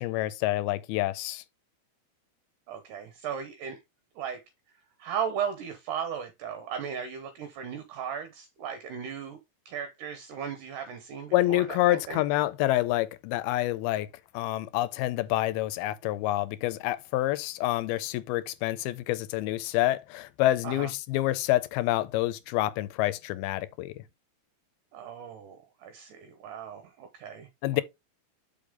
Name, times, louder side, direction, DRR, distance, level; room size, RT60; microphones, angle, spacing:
voice 1, 0.0-1.4 11.3-14.1 14.3-23.9 27.6-27.8, left 16 dB, 85° left, 2.5 m, -27 dB
voice 2, 2.7-3.8 4.2-4.4 5.0-9.4 9.7-12.2 20.6-20.9 24.9-27.8, right 8 dB, 70° right, 2.1 m, -36 dB
6.9 x 5.1 x 3.7 m
omnidirectional pair, 4.5 m